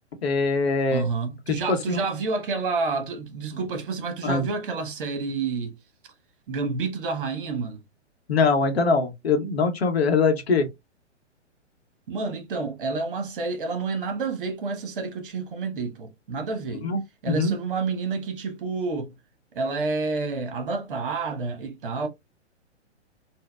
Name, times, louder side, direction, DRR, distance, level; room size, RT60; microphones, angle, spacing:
voice 1, 0.2-1.1 1.7-2.0 4.2-4.5 8.3-10.7 16.8-17.0 17.3-17.5, left 4 dB, 60° left, 0.8 m, -22 dB
voice 2, 0.9-5.7 6.5-7.8 12.1-16.9 17.2-19.1 19.5-22.1, right 4 dB, 45° right, 0.9 m, -29 dB
3.8 x 2.1 x 2.2 m
figure-of-eight pair, 115°, 35 cm